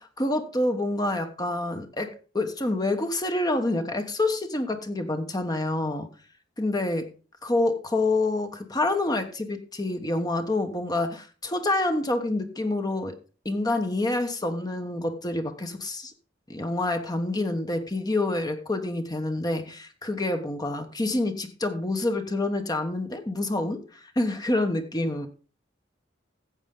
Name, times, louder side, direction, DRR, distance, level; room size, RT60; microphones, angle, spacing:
voice 1, 0.0-6.1 6.6-7.1 7.4-13.2 13.4-16.1 16.5-25.3, left 2 dB, 20° left, 1.1 m, -27 dB
14.5 x 8.1 x 3.8 m
head